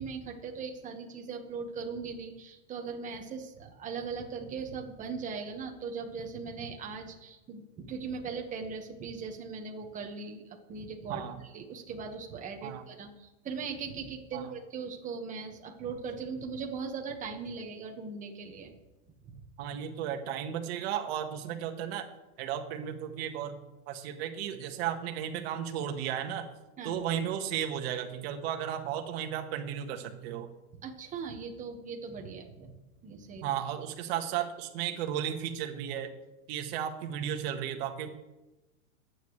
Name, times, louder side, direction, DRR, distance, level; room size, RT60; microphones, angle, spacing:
voice 1, 0.0-18.7 26.8-27.0 30.8-32.7 33.0-33.5, right 5 dB, 15° right, 3 dB, 1.5 m, -39 dB
voice 2, 11.1-11.4 12.6-12.9 14.3-14.5 19.6-22.0 22.4-23.6 23.9-26.4 26.8-30.5 33.4-36.1 36.5-38.1, right 9 dB, 45° right, 5 dB, 1.7 m, -34 dB
22.0 x 9.5 x 3.3 m, 1.0 s
supercardioid pair, 155°, 43 cm